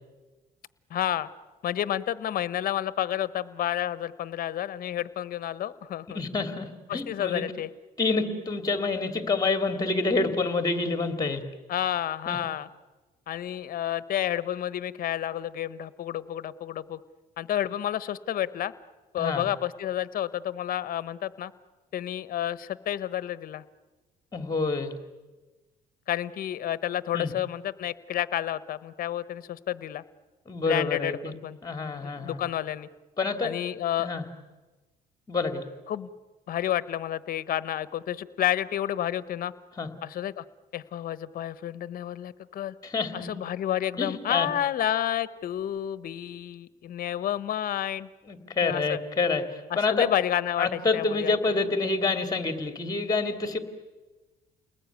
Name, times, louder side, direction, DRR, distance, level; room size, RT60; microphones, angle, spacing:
voice 1, 0.9-1.3 1.6-6.2 6.9-7.7 11.7-12.7 13.3-17.0 17.4-18.7 19.1-21.5 21.9-23.6 26.1-30.0 30.7-31.6 32.0-32.9 33.4-34.1 35.9-36.1 36.5-39.5 40.0-40.4 40.7-42.7 43.1-48.1 48.6-49.0 49.7-51.3, left 11 dB, 60° left, 16 dB, 1.1 m, -30 dB
voice 2, 6.1-7.4 8.0-11.4 12.3-12.4 19.2-19.4 24.3-24.9 27.1-27.3 30.5-31.3 31.6-32.4 33.2-33.5 34.0-34.2 35.3-35.6 39.8-39.9 42.8-43.3 44.0-44.5 48.3-50.1 50.6-53.6, left 3 dB, 20° left, 8 dB, 3.0 m, -27 dB
29.5 x 20.0 x 9.5 m, 1.2 s
cardioid pair, 110°, 17 cm